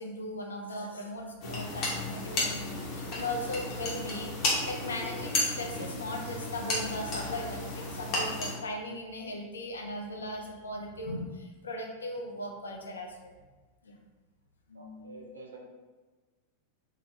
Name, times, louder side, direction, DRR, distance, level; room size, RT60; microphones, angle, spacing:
voice 1, 0.0-4.4 4.7-13.3 13.8-14.0 14.7-15.3, left 1 dB, 75° left, 1 dB, 0.5 m, -38 dB
sound 1, 1.4-8.5, left 2 dB, 40° left, 0.9 m, -33 dB
voice 2, 14.8-15.6, right 2 dB, 75° right, 1 dB, 0.5 m, -48 dB
3.6 x 2.2 x 3.1 m, 1.3 s
figure-of-eight pair, 90°, 0 cm